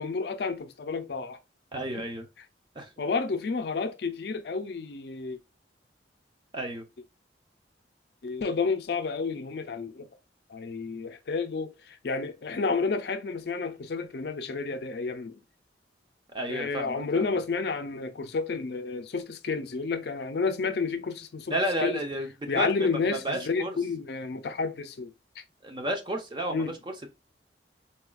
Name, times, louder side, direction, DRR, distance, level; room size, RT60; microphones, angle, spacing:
voice 1, 0.0-1.4 2.0-2.1 3.0-5.4 8.2-10.1 10.5-15.4 16.5-22.0 22.5-25.1 26.5-26.7, left 4 dB, 60° left, 0.4 m, -30 dB
voice 2, 1.7-2.3 2.8-2.9 6.5-6.8 16.3-17.3 21.5-22.3 22.5-23.8 25.6-27.1, right 1 dB, 25° right, 0.6 m, -32 dB
4.0 x 2.3 x 2.3 m
head